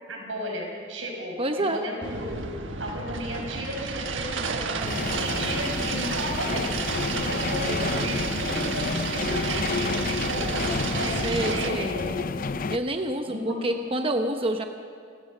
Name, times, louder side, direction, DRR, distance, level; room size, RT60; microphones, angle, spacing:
voice 1, 0.1-2.4 2.8-6.6 7.1-12.4 13.3-13.7, equal, 90° right, 0 dB, 6.4 m, -34 dB
voice 2, 1.4-1.8 7.7-8.3 11.2-12.0 12.7-14.7, right 1 dB, 30° right, 5 dB, 0.9 m, -28 dB
sound 1, 2.0-11.7, right 4 dB, 70° right, 1.3 m, -31 dB
sound 2, 4.8-12.8, left 4 dB, 45° left, 0.6 m, -30 dB
28.5 x 14.5 x 6.7 m, 2.4 s
head